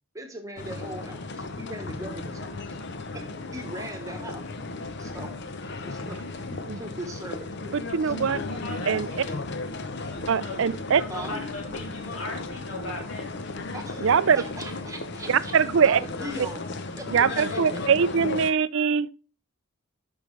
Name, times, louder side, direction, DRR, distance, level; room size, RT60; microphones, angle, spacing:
voice 1, 0.1-2.8 3.1-4.4 5.0-5.3 5.8-6.3 6.7-8.3 11.1-11.4 13.7-16.7 17.0-17.8, right 1 dB, 15° right, 1.2 m, -40 dB
sound 1, 0.6-18.5, left 3 dB, 50° left, 0.7 m, -35 dB
voice 2, 7.9-8.4 8.9-9.1 10.3-11.0 14.0-14.4 15.3-16.0 17.1-19.1, right 6 dB, 60° right, 0.4 m, -22 dB
voice 3, 8.5-9.4 9.8-13.6, left 2 dB, 70° left, 3.0 m, -39 dB
11.0 x 5.3 x 3.3 m
head